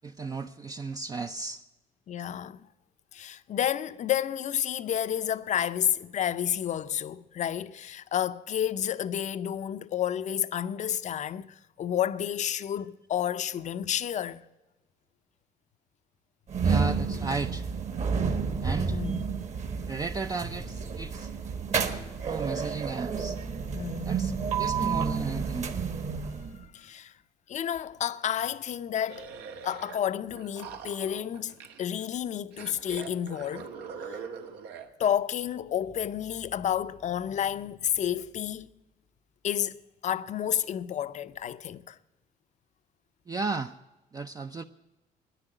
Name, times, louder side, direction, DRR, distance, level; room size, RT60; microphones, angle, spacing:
voice 1, 0.0-1.6 16.6-17.6 18.6-19.0 19.9-21.3 22.2-23.4 24.0-25.7 43.3-43.7 44.1-44.6, right 4 dB, 20° right, 0.4 m, -34 dB
voice 2, 2.1-2.7 3.1-14.4 18.9-19.2 23.7-24.1 26.6-27.1 27.5-29.3 29.6-33.7 34.1-34.2 35.0-38.7 39.4-42.0, left 10 dB, 45° left, 0.6 m, -30 dB
sound 1, 16.5-26.7, right 5 dB, 40° right, 1.4 m, -30 dB
sound 2, 29.1-30.0 30.3-32.1 32.5-34.9, right 6 dB, 80° right, 1.4 m, -42 dB
10.0 x 10.0 x 9.9 m
cardioid pair, 110°, 17 cm